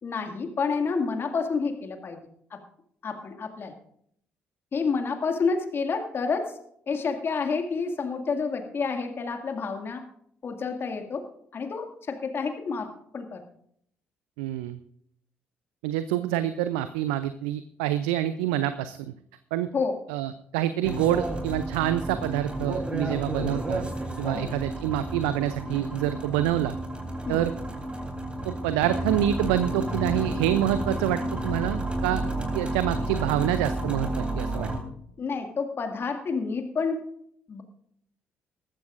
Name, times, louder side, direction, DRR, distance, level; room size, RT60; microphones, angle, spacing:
voice 1, 0.0-2.2 2.5-2.6 3.0-3.7 4.7-6.6 6.9-10.0 10.4-11.2 11.5-12.9 13.1-13.4 19.7-20.0 24.3-24.5 27.3-27.4 35.2-37.0 37.5-37.6, left 4 dB, 45° left, 5 dB, 2.1 m, -29 dB
voice 2, 14.4-14.8 15.8-19.1 19.5-19.7 20.1-23.9 24.2-26.8 27.3-27.5 28.4-32.2 32.5-34.7, right 12 dB, 75° right, 13 dB, 0.5 m, -27 dB
sound 1, 20.8-34.8, right 1 dB, 20° right, 3.5 m, -31 dB
19.5 x 14.0 x 2.5 m, 0.69 s
figure-of-eight pair, 45°, 6 cm